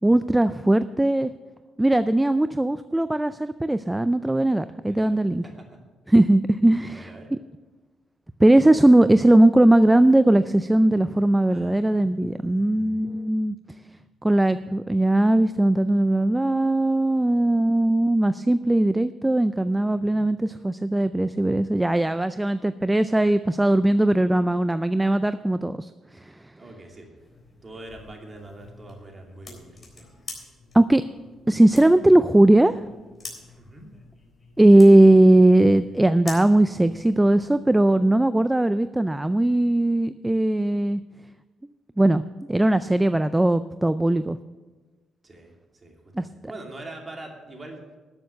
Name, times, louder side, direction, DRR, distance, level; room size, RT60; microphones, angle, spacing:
voice 1, 0.0-1.3 1.8-5.5 6.1-7.4 8.4-13.6 14.2-26.2 30.7-31.0 31.5-32.8 34.6-41.0 42.0-42.2 42.5-44.4 46.2-46.3, right 1 dB, 10° right, 13 dB, 0.4 m, -19 dB
voice 2, 4.8-5.2 5.4-5.7 6.9-7.3 11.5-12.9 19.9-20.2 26.6-27.2 27.6-30.1 33.6-33.9 45.2-45.5 45.8-47.8, right 2 dB, 30° right, 1 dB, 2.7 m, -43 dB
sound 1, 27.2-37.5, left 3 dB, 30° left, 3.7 m, -46 dB
12.5 x 7.0 x 6.8 m, 1.2 s
cardioid pair, 90°, 0 cm